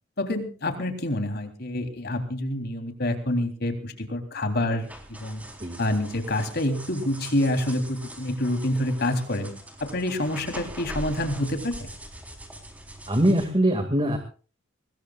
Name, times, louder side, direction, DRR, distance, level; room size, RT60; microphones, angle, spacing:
voice 1, 0.2-5.4 5.8-9.5 9.8-11.9, left 1 dB, 55° left, 6 dB, 3.6 m, -27 dB
sound 1, 4.8-13.4, right 1 dB, 10° right, 4.0 m, -42 dB
voice 2, 13.1-14.2, right 1 dB, 25° right, 6 dB, 2.2 m, -22 dB
24.0 x 21.0 x 2.5 m, 0.39 s
head